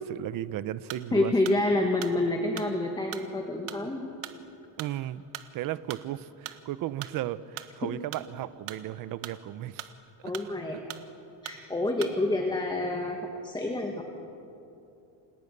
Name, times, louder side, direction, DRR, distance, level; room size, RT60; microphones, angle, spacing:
voice 1, 0.1-1.3 4.8-5.2 5.5-9.9 10.2-10.3, right 13 dB, 40° right, 15 dB, 0.8 m, -35 dB
sound 1, 0.9-1.1 1.5-6.6 7.0-8.3 8.6-10.1 10.3-11.1 11.5-11.6 12.0-12.2, right 14 dB, 75° right, 1.7 m, -42 dB
voice 2, 1.1-4.0 10.2-10.8 11.4-13.2 13.4-14.1, left 2 dB, 10° left, 2 dB, 1.9 m, -28 dB
30.0 x 27.0 x 6.8 m, 2.7 s
cardioid pair, 165°, 50 cm